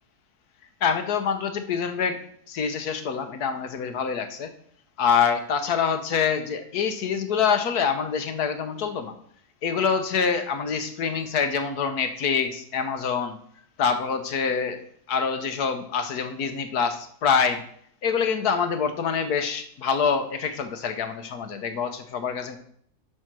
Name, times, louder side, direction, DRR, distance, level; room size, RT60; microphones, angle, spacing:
voice 1, 0.8-2.2 2.5-4.5 5.0-9.1 9.6-13.4 13.8-17.6 18.0-22.6, left 6 dB, 70° left, 8 dB, 1.5 m, -25 dB
11.0 x 5.9 x 6.1 m, 0.63 s
omnidirectional pair, 1.7 m